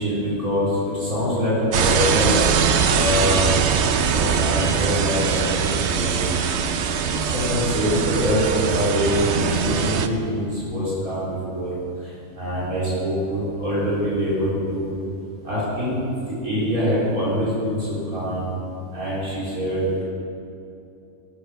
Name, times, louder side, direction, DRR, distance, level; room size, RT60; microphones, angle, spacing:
voice 1, 0.0-2.4 2.8-3.5 4.1-6.3 7.1-11.7 12.0-14.9 15.4-16.0 16.4-18.5 18.9-19.8, equal, 75° right, -9 dB, 4.3 m, -24 dB
sound 1, 1.7-10.1, right 7 dB, 60° right, 0.9 m, -22 dB
18.0 x 8.6 x 6.3 m, 2.7 s
omnidirectional pair, 1.6 m